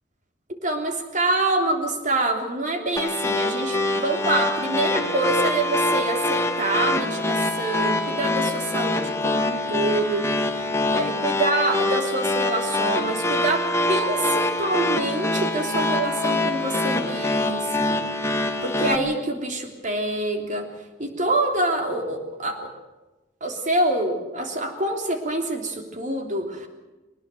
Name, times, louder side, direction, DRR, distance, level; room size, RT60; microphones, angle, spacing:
voice 1, 0.6-18.1 18.6-20.7 21.0-22.7 23.4-26.7, right 2 dB, 45° right, 4 dB, 3.3 m, -26 dB
sound 1, 3.0-19.0, left 2 dB, 15° left, 1.7 m, -24 dB
21.5 x 19.5 x 7.8 m, 1.1 s
head